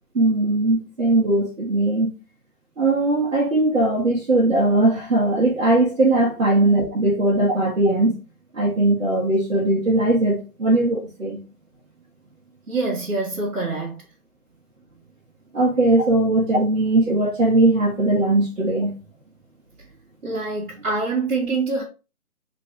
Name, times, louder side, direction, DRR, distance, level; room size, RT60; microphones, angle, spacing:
voice 1, 0.1-2.1 2.8-8.2 8.5-11.4 15.5-18.9, right 2 dB, 55° right, 1.4 m, -19 dB
voice 2, 12.7-14.0 20.2-21.8, right 3 dB, 70° right, 1.8 m, -25 dB
4.2 x 3.3 x 3.3 m
hypercardioid pair, 180°, 45 cm